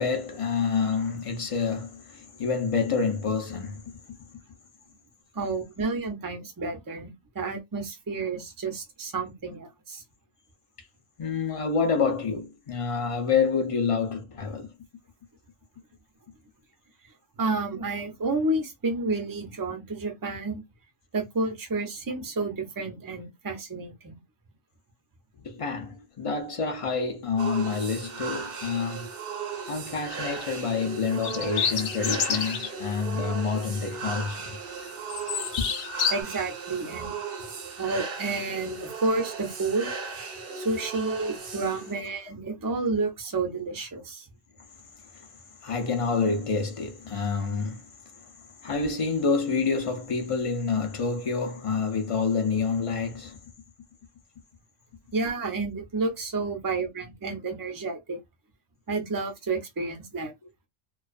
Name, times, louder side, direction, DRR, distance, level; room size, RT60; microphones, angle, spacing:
voice 1, 0.0-4.2 11.2-14.7 25.4-29.1 29.7-34.6 35.6-35.7 45.1-45.3 45.6-47.9 48.6-53.4, left 5 dB, 40° left, 0.5 m, -28 dB
voice 2, 5.3-7.1 7.3-10.0 17.4-20.6 21.1-24.2 36.1-37.2 37.8-39.9 40.5-44.3 55.1-58.2 58.9-60.3, right 3 dB, 25° right, 0.5 m, -30 dB
sound 1, 27.4-42.0, right 5 dB, 60° right, 0.8 m, -37 dB
sound 2, 30.1-30.3 31.1-32.7 33.2-33.3 33.7-34.5 34.8-36.2, left 7 dB, 65° left, 0.8 m, -29 dB
2.3 x 2.3 x 2.4 m
omnidirectional pair, 1.2 m